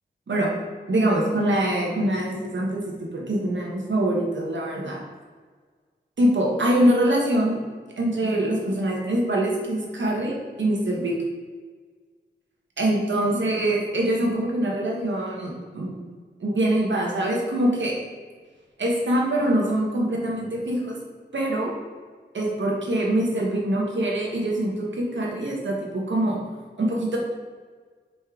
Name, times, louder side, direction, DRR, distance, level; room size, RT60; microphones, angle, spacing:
voice 1, 0.9-5.0 6.2-7.6 8.0-11.1 12.8-16.0 16.4-18.0 18.8-21.0 21.3-21.7 22.3-26.4 26.8-27.2, right 1 dB, 85° right, -2 dB, 1.4 m, -24 dB
5.5 x 4.3 x 4.9 m, 1.5 s
wide cardioid pair, 65°, 19 cm